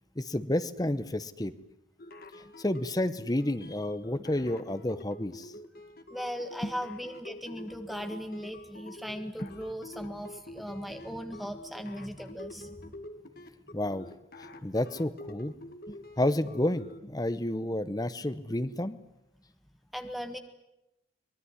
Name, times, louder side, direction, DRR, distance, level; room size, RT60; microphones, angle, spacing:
voice 1, 0.2-1.5 2.3-5.5 6.6-6.7 9.4-9.5 13.7-14.1 14.6-15.5 15.9-19.0, left 1 dB, 20° left, 13 dB, 0.9 m, -30 dB
sound 1, 2.0-17.0, left 1 dB, 50° left, 2.0 m, -47 dB
voice 2, 6.1-12.7 19.9-20.4, equal, ahead, 7 dB, 1.6 m, -38 dB
24.5 x 20.5 x 9.7 m, 0.87 s
head